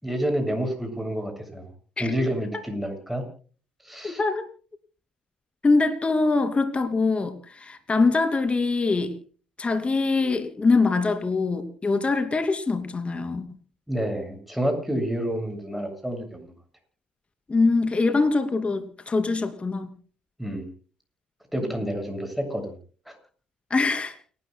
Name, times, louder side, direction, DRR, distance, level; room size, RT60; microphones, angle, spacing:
voice 1, 0.0-1.7 2.0-3.3 3.8-4.2 13.9-16.5 20.4-20.6 21.5-22.7 23.1-23.2, equal, ahead, 5 dB, 7.3 m, -29 dB
voice 2, 4.0-4.5 5.6-9.1 9.6-13.4 17.5-19.9 23.7-24.2, left 3 dB, 25° left, 8 dB, 2.8 m, -23 dB
29.5 x 13.5 x 2.3 m, 0.40 s
hypercardioid pair, 60°, 4 cm